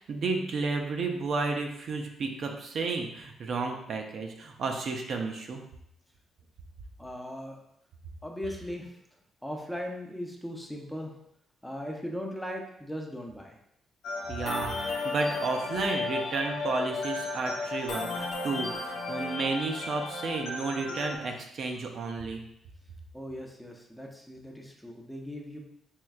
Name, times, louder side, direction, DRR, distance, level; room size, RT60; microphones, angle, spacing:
voice 1, 0.1-5.6 14.3-22.4, right 3 dB, 60° right, 3 dB, 0.5 m, -32 dB
voice 2, 7.0-7.6 8.2-9.0 9.4-11.2 11.6-13.6 23.1-25.6, equal, 5° left, 1 dB, 0.6 m, -38 dB
sound 1, 14.0-21.2, left 3 dB, 80° left, 0.8 m, -34 dB
4.5 x 3.1 x 2.4 m, 0.77 s
cardioid pair, 90°, 0 cm